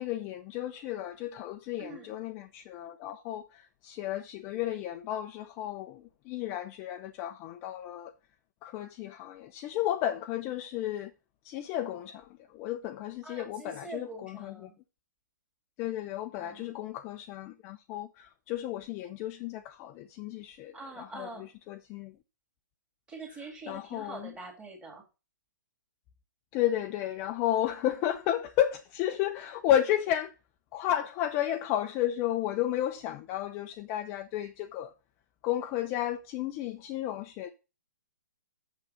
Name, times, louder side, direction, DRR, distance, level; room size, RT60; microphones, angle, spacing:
voice 1, 0.0-8.1 8.6-11.1 11.4-14.7 15.8-22.1 23.7-24.3 26.5-30.3 30.7-34.9 35.4-37.5, left 12 dB, 25° left, 0.5 m, -33 dB
voice 2, 13.2-14.7 16.4-16.7 20.7-21.5 23.1-25.0, right 3 dB, 10° right, 2.3 m, -44 dB
6.9 x 6.6 x 5.5 m
hypercardioid pair, 150°, 10 cm